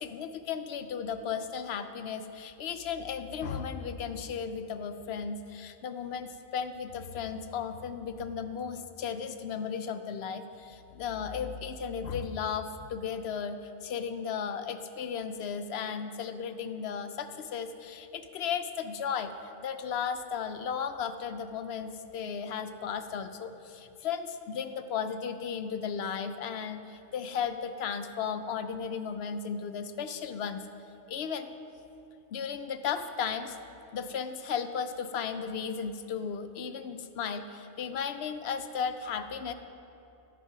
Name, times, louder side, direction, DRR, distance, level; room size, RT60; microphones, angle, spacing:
voice 1, 0.0-19.3 19.6-30.7 31.1-31.5 32.3-33.6 33.9-39.5, left 7 dB, 65° left, 10 dB, 0.8 m, -35 dB
9.9 x 9.1 x 5.9 m, 2.7 s
omnidirectional pair, 1.3 m